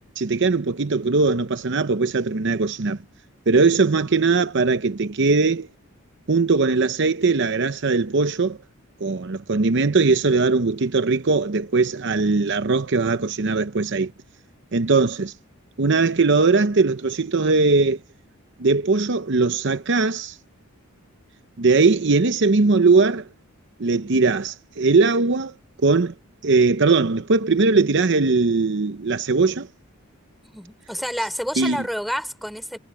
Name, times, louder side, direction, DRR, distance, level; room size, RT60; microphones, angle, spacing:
voice 1, 0.2-3.0 3.5-5.7 6.3-8.6 9.0-14.1 14.7-15.3 15.8-18.0 18.6-20.4 21.6-23.3 23.8-25.5 25.8-26.1 26.4-29.7 31.6-31.8, right 3 dB, 55° right, 0.8 m, -20 dB
voice 2, 30.4-32.8, equal, ahead, 4.9 m, -29 dB
head